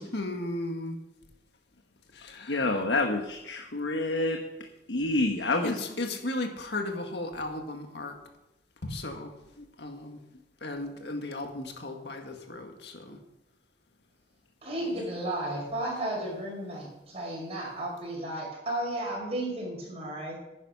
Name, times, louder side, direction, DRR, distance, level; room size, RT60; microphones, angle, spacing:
voice 1, 0.1-1.0 2.1-2.7 5.6-8.2 8.8-9.3 9.6-10.2 10.6-13.2, left 2 dB, 65° left, 4 dB, 1.8 m, -35 dB
voice 2, 2.5-4.4 4.9-5.8, left 2 dB, 85° left, 3 dB, 1.1 m, -27 dB
voice 3, 14.6-20.4, right 1 dB, 35° right, -2 dB, 5.5 m, -33 dB
10.5 x 9.9 x 5.6 m, 0.95 s
head